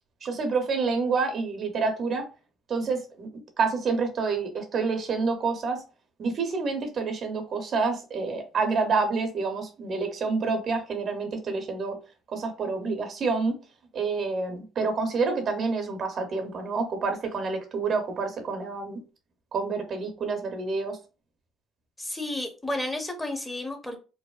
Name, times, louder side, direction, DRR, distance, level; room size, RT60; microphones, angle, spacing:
voice 1, 0.2-2.2 2.7-5.8 6.2-12.0 12.3-13.6 13.9-19.0 19.5-21.0, right 4 dB, 50° right, 0.7 m, -28 dB
voice 2, 22.0-24.0, left 1 dB, 15° left, 0.7 m, -32 dB
2.6 x 2.0 x 2.3 m
hypercardioid pair, 65°, 0 cm